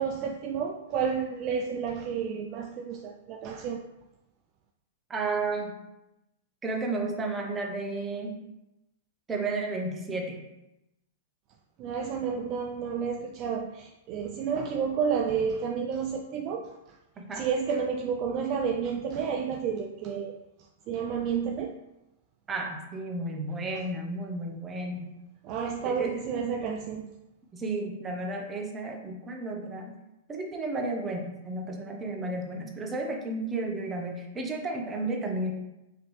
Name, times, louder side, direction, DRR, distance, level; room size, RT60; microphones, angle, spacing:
voice 1, 0.0-3.8 11.8-16.7 17.3-20.4 20.9-21.7 25.4-27.1, right 6 dB, 40° right, 2 dB, 0.3 m, -30 dB
voice 2, 5.1-5.7 6.6-8.4 9.3-10.4 17.2-17.4 22.5-25.1 25.8-26.2 27.5-29.9 30.3-35.5, right 2 dB, 15° right, 1 dB, 0.8 m, -32 dB
4.9 x 3.0 x 3.1 m, 0.93 s
hypercardioid pair, 135°, 0 cm